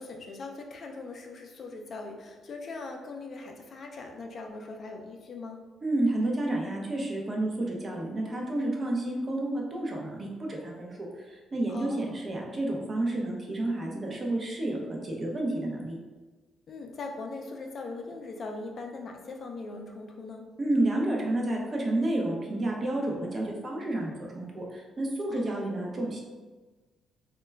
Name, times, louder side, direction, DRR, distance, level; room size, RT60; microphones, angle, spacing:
voice 1, 0.0-5.6 11.7-12.2 16.7-20.5 25.3-25.7, left 3 dB, 55° left, 2 dB, 0.4 m, -40 dB
voice 2, 5.8-16.0 20.6-26.2, right 1 dB, 35° right, -1 dB, 0.6 m, -30 dB
2.2 x 2.1 x 3.3 m, 1.3 s
cardioid pair, 90°, 0 cm